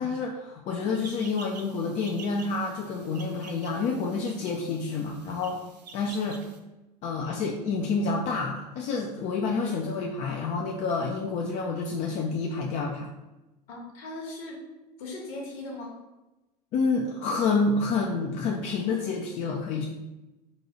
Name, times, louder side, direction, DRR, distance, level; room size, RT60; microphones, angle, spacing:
voice 1, 0.0-5.6 5.9-6.4 7.0-13.1 16.7-19.8, left 4 dB, 35° left, 0 dB, 0.4 m, -28 dB
sound 1, 0.9-6.6, right 5 dB, 75° right, 0.4 m, -48 dB
voice 2, 13.7-14.6 15.0-15.9, left 2 dB, 55° left, -1 dB, 1.1 m, -38 dB
4.0 x 2.3 x 2.8 m, 1.0 s
figure-of-eight pair, 75°, 21 cm